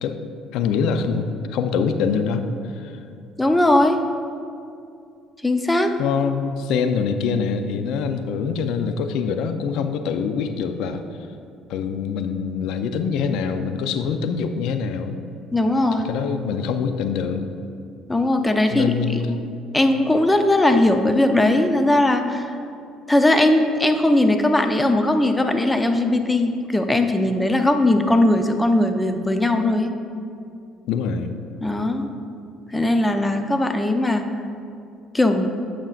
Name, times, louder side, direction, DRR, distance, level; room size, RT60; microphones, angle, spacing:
voice 1, 0.0-2.4 2.7-3.0 6.0-11.0 11.7-15.2 16.0-17.4 18.7-19.4 30.9-31.4, left 6 dB, 75° left, 8 dB, 0.5 m, -24 dB
voice 2, 3.4-4.0 5.4-5.9 15.5-16.1 18.1-19.4 19.7-22.5 23.1-29.9 31.6-32.1 32.7-34.3 35.1-35.5, left 1 dB, 10° left, 6 dB, 0.5 m, -19 dB
9.1 x 6.4 x 2.5 m, 2.5 s
supercardioid pair, 85°, 0 cm